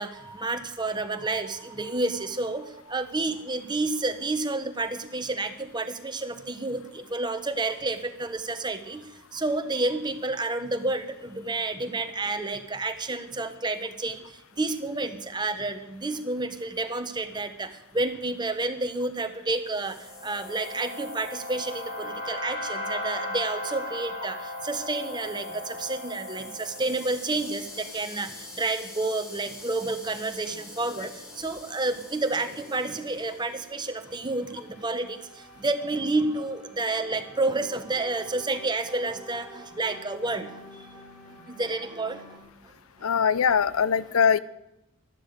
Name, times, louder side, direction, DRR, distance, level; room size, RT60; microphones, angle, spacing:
voice 1, 0.0-9.0 9.3-14.2 14.6-17.7 17.9-19.9 20.2-24.4 24.6-28.3 28.6-31.1 31.4-35.2 35.6-40.5 41.6-42.2, right 2 dB, 20° right, 8 dB, 1.1 m, -30 dB
sound 1, 19.7-33.1, left 1 dB, 40° left, 7.3 m, -38 dB
sound 2, 25.5-42.4, equal, ahead, 3.2 m, -51 dB
voice 2, 43.0-44.4, left 7 dB, 90° left, 18 dB, 0.6 m, -22 dB
12.5 x 12.0 x 8.1 m, 0.88 s
head